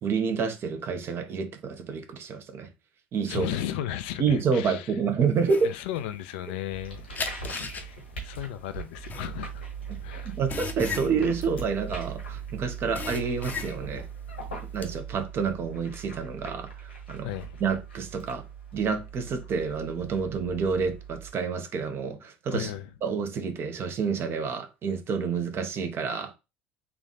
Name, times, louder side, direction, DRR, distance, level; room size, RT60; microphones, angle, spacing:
voice 1, 0.0-2.7 3.1-3.5 4.2-5.7 10.2-14.1 14.7-17.3 17.6-18.5 18.7-22.7 23.0-26.3, right 5 dB, 40° right, 0.9 m, -28 dB
voice 2, 3.3-4.9 5.6-7.0 7.7-7.9 8.2-9.6 10.0-10.3 17.2-17.5 22.5-22.9, left 11 dB, 65° left, 0.4 m, -34 dB
sound 1, 5.5-6.8 7.2-12.4 12.7-14.1 14.4-14.9, left 5 dB, 30° left, 0.7 m, -36 dB
sound 2, 6.7-21.3, right 5 dB, 85° left, 1.4 m, -40 dB
3.4 x 2.4 x 4.0 m
figure-of-eight pair, 65°, 6 cm